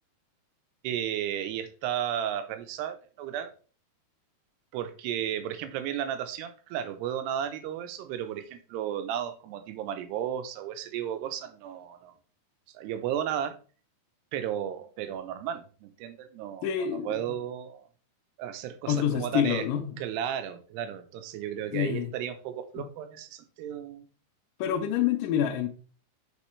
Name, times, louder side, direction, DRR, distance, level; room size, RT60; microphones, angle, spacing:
voice 1, 0.8-3.5 4.7-12.1 12.7-13.6 14.3-16.7 17.1-17.9 18.4-19.6 20.0-24.0, right 10 dB, 85° right, 2.9 m, -34 dB
voice 2, 16.6-17.2 18.9-20.0 21.7-22.1 22.8-22.9 24.6-25.7, left 9 dB, 75° left, 2.1 m, -27 dB
8.4 x 6.4 x 3.1 m
omnidirectional pair, 4.6 m